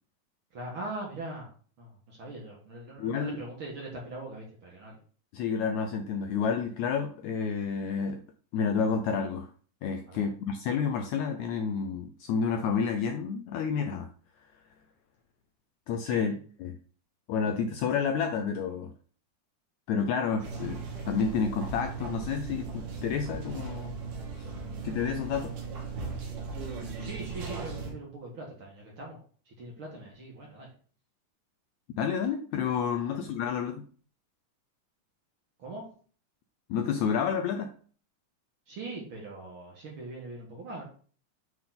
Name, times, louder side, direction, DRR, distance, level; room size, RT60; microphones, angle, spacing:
voice 1, 0.5-1.5 1.8-5.0 10.1-10.2 16.0-16.4 27.0-29.2 29.5-30.7 33.1-33.2 35.6-35.8 38.7-40.8, right 2 dB, 50° right, -1 dB, 1.8 m, -41 dB
voice 2, 3.0-3.4 5.3-8.2 8.5-9.5 9.8-14.1 15.9-16.3 16.6-16.8 17.3-18.9 19.9-24.0 24.4-24.5 24.8-25.5 32.0-33.8 36.7-37.7, left 6 dB, 80° left, 6 dB, 1.7 m, -30 dB
sound 1, 20.4-27.9, right 4 dB, 75° right, 3.3 m, -37 dB
8.7 x 3.7 x 3.8 m, 0.43 s
omnidirectional pair, 3.8 m